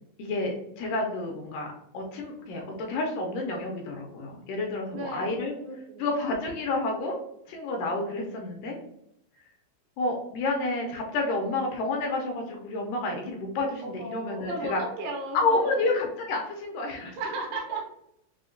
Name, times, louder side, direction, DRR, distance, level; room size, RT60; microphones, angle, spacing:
voice 1, 0.2-1.7 1.9-5.5 6.0-7.2 7.5-8.8 10.0-14.8 15.3-17.2, left 2 dB, 80° left, 1 dB, 2.0 m, -29 dB
voice 2, 4.9-5.3 5.6-6.1 13.8-16.0 17.0-17.8, right 2 dB, 80° right, 1 dB, 2.3 m, -35 dB
5.7 x 2.1 x 2.5 m, 0.77 s
omnidirectional pair, 4.1 m